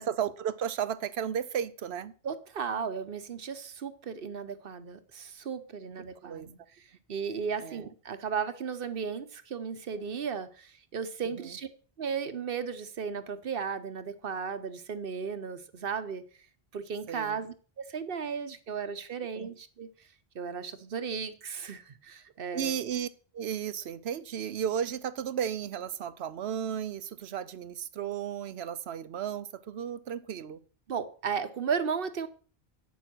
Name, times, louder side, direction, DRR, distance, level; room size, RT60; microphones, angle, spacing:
voice 1, 0.0-2.1 6.2-6.5 7.6-7.9 11.4-11.5 17.1-17.4 19.3-19.5 22.5-23.1 23.3-30.6, right 8 dB, 90° right, 1.0 m, -34 dB
voice 2, 2.2-11.7 12.0-16.2 16.7-19.9 20.3-22.8 30.9-32.3, right 6 dB, 65° right, 1.0 m, -35 dB
9.3 x 7.2 x 6.1 m
omnidirectional pair, 1.0 m